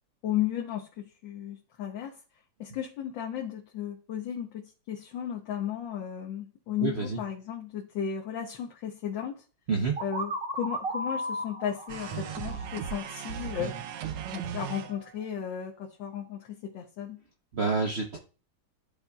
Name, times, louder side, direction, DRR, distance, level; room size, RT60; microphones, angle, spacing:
voice 1, 0.2-2.2 2.6-9.4 10.0-13.8 14.3-17.2, left 9 dB, 70° left, 0 dB, 1.5 m, -35 dB
voice 2, 6.8-7.2 9.7-10.0 17.5-18.2, right 4 dB, 70° right, 1 dB, 0.6 m, -28 dB
sound 1, 10.0-13.7, equal, 40° right, 0.9 m, -36 dB
sound 2, 11.9-15.3, right 9 dB, 85° right, 1.6 m, -37 dB
12.5 x 4.2 x 2.3 m, 0.35 s
omnidirectional pair, 2.3 m